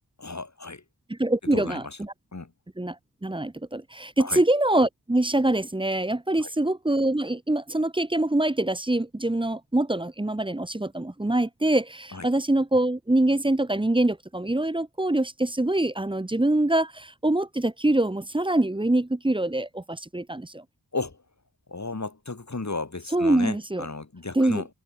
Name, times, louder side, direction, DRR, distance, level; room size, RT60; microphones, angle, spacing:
voice 1, 0.2-0.8 1.4-2.0 2.3-2.5 4.2-4.4 6.3-6.5 12.1-12.3 20.9-21.2 21.7-24.7, left 3 dB, 40° left, 6.9 m, -34 dB
voice 2, 1.1-2.1 2.8-3.0 3.2-20.6 23.1-23.8 24.4-24.6, right 1 dB, 10° right, 0.8 m, -24 dB
wide cardioid pair, 95°, 42 cm